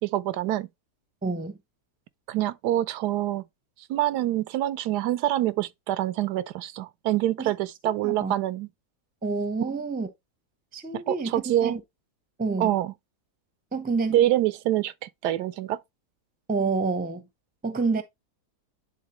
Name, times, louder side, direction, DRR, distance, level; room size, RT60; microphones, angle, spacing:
voice 1, 0.0-0.7 2.3-3.4 3.9-8.7 10.9-11.8 12.6-12.9 14.1-15.8, right 13 dB, 85° right, 1.2 m, -26 dB
voice 2, 1.2-1.5 7.4-7.5 8.0-8.3 9.2-10.1 10.7-11.8 12.4-12.7 13.7-14.2 16.5-17.3 17.6-18.0, right 4 dB, 10° right, 0.5 m, -28 dB
10.0 x 3.8 x 3.0 m
omnidirectional pair, 1.7 m